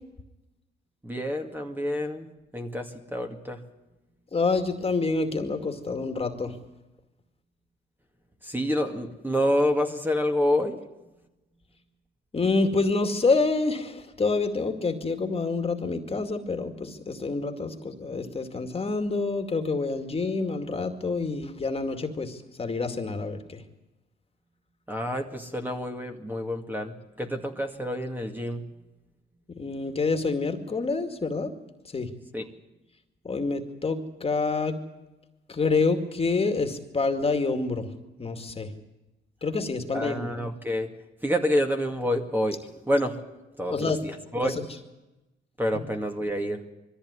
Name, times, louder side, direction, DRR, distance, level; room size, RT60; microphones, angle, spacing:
voice 1, 1.0-2.3 2.5-3.6 8.4-10.8 24.9-28.6 32.3-32.5 39.9-40.9 41.2-43.2 43.6-44.5 45.6-46.6, equal, 10° right, 4 dB, 2.2 m, -28 dB
voice 2, 4.3-6.6 12.3-23.6 29.5-31.5 31.9-32.1 33.2-34.8 35.5-37.9 38.2-38.7 39.4-40.4 43.7-44.0 44.3-44.6, left 3 dB, 30° left, 6 dB, 2.3 m, -27 dB
22.0 x 14.5 x 9.8 m, 1.0 s
cardioid pair, 90°, 20 cm